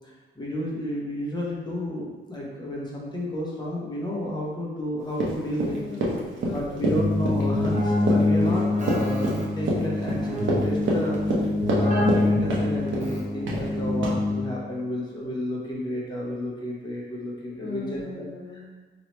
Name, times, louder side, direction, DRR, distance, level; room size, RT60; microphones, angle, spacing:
voice 1, 0.4-5.8 6.4-11.2 11.7-18.2, equal, 20° left, -4 dB, 0.9 m, -31 dB
Run, 5.1-12.2 12.5-13.1 13.5-13.7 14.0-14.2, right 1 dB, 85° right, 0.9 m, -27 dB
voice 2, 5.7-7.1 17.6-18.7, left 4 dB, 70° left, 0 dB, 0.7 m, -38 dB
Keyboard (musical), 6.8-14.7, left 2 dB, 40° right, 0.8 m, -25 dB
3.0 x 2.8 x 4.4 m, 1.3 s
wide cardioid pair, 135°, 19 cm